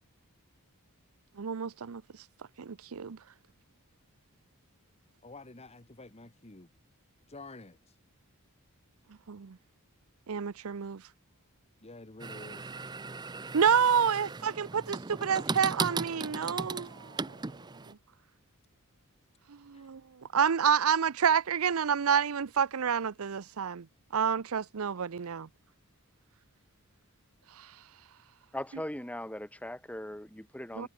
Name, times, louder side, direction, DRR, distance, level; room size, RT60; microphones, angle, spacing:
voice 1, 1.4-2.0 2.6-3.2 9.3-9.6 10.3-11.0 13.5-17.4 17.9-18.0 19.7-20.0 20.3-23.9 24.1-25.5 27.6-27.7 30.8-30.9, right 7 dB, 65° right, 0.6 m, -28 dB
voice 2, 5.2-6.7 7.3-7.8 11.8-12.7 19.7-19.9, left 2 dB, 30° left, 1.7 m, -49 dB
sound 1, 12.2-17.9, right 4 dB, 20° right, 0.5 m, -37 dB
voice 3, 28.5-30.9, left 1 dB, 5° left, 4.0 m, -39 dB
head